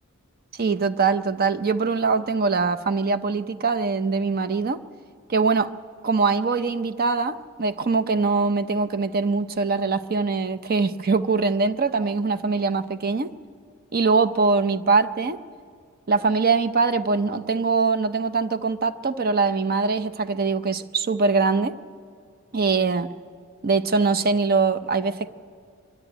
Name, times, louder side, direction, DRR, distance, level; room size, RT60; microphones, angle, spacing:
voice 1, 0.5-4.8 5.3-5.7 6.0-13.3 13.9-15.4 16.1-21.7 22.5-23.1 23.6-25.3, right 4 dB, 45° right, 0.6 m, -22 dB
23.0 x 12.0 x 9.9 m
head